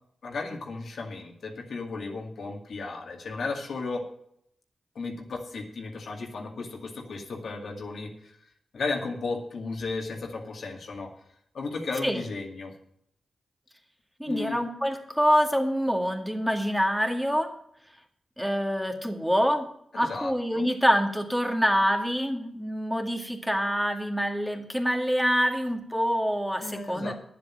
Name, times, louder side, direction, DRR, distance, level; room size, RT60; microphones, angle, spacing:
voice 1, 0.2-4.0 5.0-8.3 8.7-11.1 11.5-12.7 14.2-14.6 19.9-20.7 26.6-27.1, left 3 dB, 70° left, 2 dB, 2.1 m, -34 dB
voice 2, 14.2-17.5 18.4-19.7 19.9-27.1, equal, ahead, 3 dB, 2.1 m, -26 dB
9.9 x 7.7 x 7.5 m, 0.69 s
cardioid pair, 55°, 0 cm